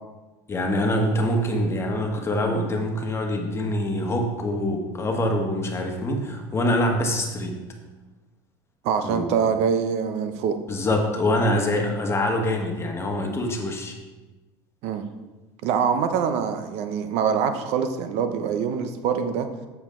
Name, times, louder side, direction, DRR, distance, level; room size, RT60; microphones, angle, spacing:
voice 1, 0.5-7.6 9.0-9.4 10.7-13.9, left 1 dB, 20° left, 2 dB, 1.4 m, -25 dB
voice 2, 8.8-10.6 14.8-15.0 15.6-19.5, right 7 dB, 65° right, 8 dB, 0.8 m, -24 dB
8.1 x 6.9 x 3.8 m, 1.2 s
supercardioid pair, 110°, 12 cm